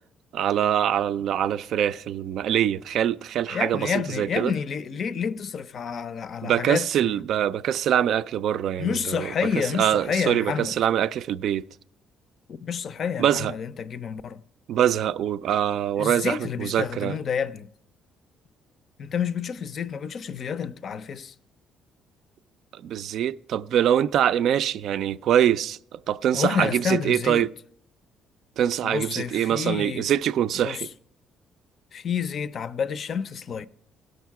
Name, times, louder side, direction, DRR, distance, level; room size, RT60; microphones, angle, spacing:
voice 1, 0.3-4.5 6.4-9.3 9.6-11.7 13.2-13.5 14.7-17.2 22.7-27.5 28.6-30.9, right 10 dB, 65° right, 0.3 m, -24 dB
voice 2, 3.5-7.1 8.8-10.7 12.6-14.4 16.0-17.7 19.0-21.3 26.3-27.5 28.8-30.1 30.6-30.8 31.9-33.7, left 7 dB, 50° left, 0.5 m, -29 dB
16.5 x 6.4 x 4.7 m
cardioid pair, 95°, 0 cm